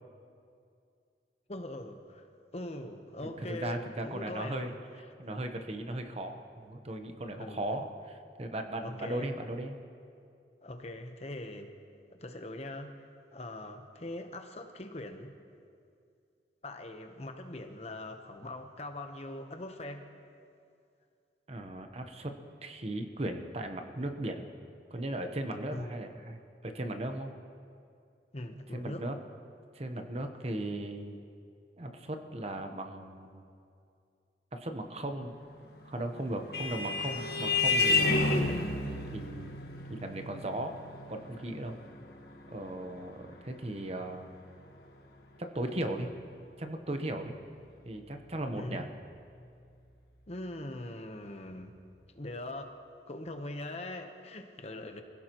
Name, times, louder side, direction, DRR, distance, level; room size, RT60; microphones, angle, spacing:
voice 1, 1.5-2.2 2.5-4.8 7.4-7.7 8.8-9.3 10.6-11.7 12.1-15.3 16.6-20.1 25.7-25.9 28.3-29.1 48.5-48.9 50.3-51.7 52.1-52.8 53.1-55.0, left 1 dB, 35° left, 5 dB, 1.0 m, -41 dB
voice 2, 3.2-4.7 5.2-9.8 21.5-22.3 22.6-24.5 24.9-26.4 26.6-27.3 28.7-29.2 29.7-31.2 31.8-33.4 34.5-35.3 35.8-38.3 39.1-39.6 39.9-40.7 41.1-41.8 42.5-44.3 45.5-46.1 46.6-47.4 47.8-48.9, right 1 dB, 35° right, 5 dB, 1.0 m, -37 dB
Vehicle horn car horn honking, 35.9-44.9, left 3 dB, 60° left, 1.5 m, -32 dB
25.0 x 16.5 x 3.1 m, 2.4 s
head